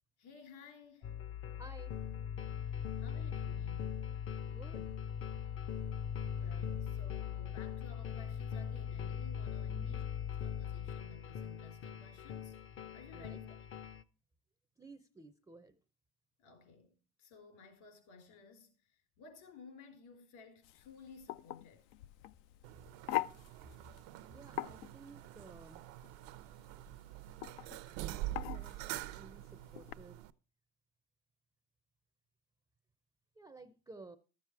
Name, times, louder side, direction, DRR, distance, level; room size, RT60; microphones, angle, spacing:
voice 1, 0.2-1.2 3.0-4.1 6.3-10.0 10.4-12.6 12.9-13.5 16.4-21.9, left 5 dB, 70° left, 3.8 m, -56 dB
sound 1, 1.0-14.0, left 8 dB, 40° left, 0.5 m, -40 dB
voice 2, 1.6-2.0 4.5-4.9 9.7-10.0 13.1-13.4 14.8-15.8 24.2-25.8 28.0-30.2 33.4-34.2, right 2 dB, 10° right, 0.4 m, -55 dB
sound 2, 20.6-29.9, left 16 dB, 85° left, 0.5 m, -44 dB
sound 3, 22.6-30.3, right 16 dB, 80° right, 0.6 m, -46 dB
12.5 x 7.4 x 4.6 m
supercardioid pair, 120°, 34 cm